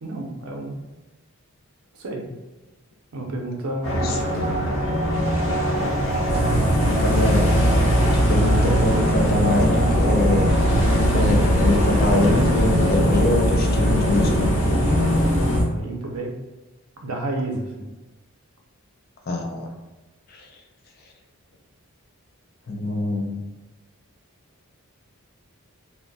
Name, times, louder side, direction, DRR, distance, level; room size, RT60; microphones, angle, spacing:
voice 1, 0.0-0.8 1.9-2.3 3.1-4.2 6.5-7.2 14.9-15.1 15.5-16.3 17.0-17.9, right 1 dB, 80° right, 1 dB, 0.6 m, -31 dB
sound 1, 3.8-15.6, equal, 70° left, 0.9 m, -22 dB
sound 2, 6.3-15.6, right 1 dB, 25° left, 1.0 m, -22 dB
voice 2, 7.0-7.5 8.3-10.6 11.1-14.6 19.3-19.7 20.3-20.6 22.7-23.4, left 2 dB, 45° left, 2 dB, 0.4 m, -23 dB
2.2 x 2.1 x 3.8 m, 1.1 s
head